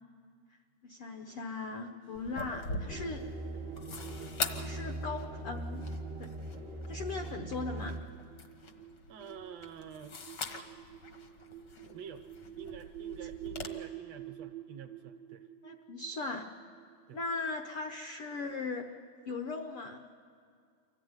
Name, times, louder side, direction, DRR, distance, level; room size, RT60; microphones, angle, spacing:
voice 1, 0.8-3.3 4.6-5.8 6.2-6.3 6.9-8.0 15.6-16.5 17.1-18.9 19.3-20.0, left 3 dB, 75° left, 5 dB, 1.3 m, -38 dB
sound 1, 2.0-18.3, right 12 dB, 90° right, 1.4 m, -49 dB
sound 2, 2.1-13.7, left 4 dB, 60° left, 1.1 m, -43 dB
sound 3, 2.9-8.0, right 1 dB, 45° right, 0.8 m, -41 dB
voice 2, 9.1-10.2 11.9-12.3 12.6-15.5 17.1-17.2, right 8 dB, 65° right, 6 dB, 1.7 m, -48 dB
24.5 x 15.5 x 9.5 m, 2.2 s
omnidirectional pair, 3.9 m